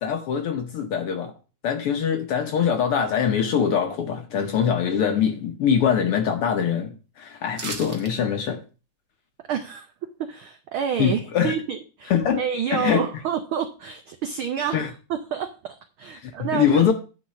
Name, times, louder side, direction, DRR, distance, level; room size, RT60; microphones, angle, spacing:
voice 1, 0.0-1.3 1.6-8.6 11.0-11.5 12.1-12.4 12.7-13.1 14.7-14.9 16.2-16.9, left 8 dB, 70° left, 1.4 m, -23 dB
sound 1, 7.5-8.1 8.5-8.6, right 4 dB, 45° right, 1.1 m, -34 dB
voice 2, 9.5-16.9, right 8 dB, 90° right, 1.1 m, -29 dB
10.0 x 4.0 x 7.3 m
omnidirectional pair, 3.3 m